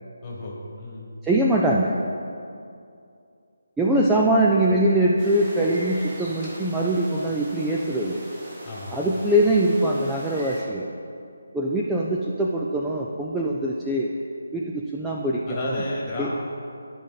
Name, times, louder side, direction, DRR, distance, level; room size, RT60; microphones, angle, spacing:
voice 1, 0.2-1.1 8.6-9.0 15.5-16.3, left 1 dB, 20° left, -4 dB, 1.5 m, -32 dB
voice 2, 1.2-2.0 3.8-8.2 8.9-10.9 11.5-14.1 14.5-15.8 16.2-16.3, right 1 dB, 5° right, -4 dB, 0.3 m, -22 dB
sound 1, 5.2-10.6, equal, 20° right, 1.5 m, -41 dB
11.5 x 5.1 x 4.0 m, 2.4 s
figure-of-eight pair, 170°, 0 cm